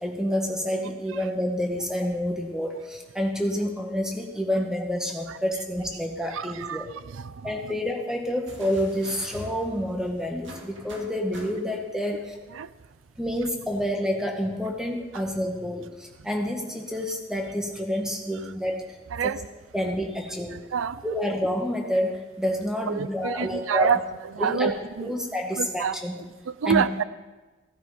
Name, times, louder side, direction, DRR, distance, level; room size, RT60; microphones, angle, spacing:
voice 1, 0.0-6.9 7.4-12.3 13.2-19.0 19.2-19.3 19.7-20.6 21.0-23.9 24.4-24.7 25.0-26.2 26.7-26.9, equal, 5° right, 1 dB, 1.8 m, -28 dB
voice 2, 6.3-6.9 7.1-7.5 12.5-12.7 19.1-19.4 20.7-21.0 22.9-24.0 24.3-25.1 25.6-27.0, right 7 dB, 90° right, 16 dB, 0.5 m, -27 dB
sound 1, 8.5-12.0 13.2-13.3, equal, 70° right, 2.2 m, -44 dB
15.5 x 14.0 x 5.1 m, 1.2 s
head